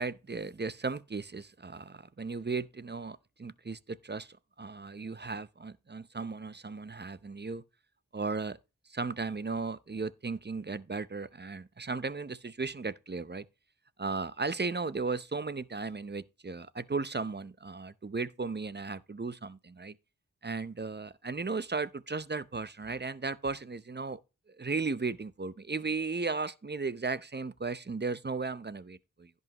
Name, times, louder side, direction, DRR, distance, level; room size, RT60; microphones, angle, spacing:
voice 1, 0.0-7.6 8.1-8.6 8.9-13.5 14.0-19.9 20.4-24.2 24.5-29.3, right 4 dB, 30° right, 0.7 m, -36 dB
16.0 x 5.5 x 2.9 m
cardioid pair, 50°, 32 cm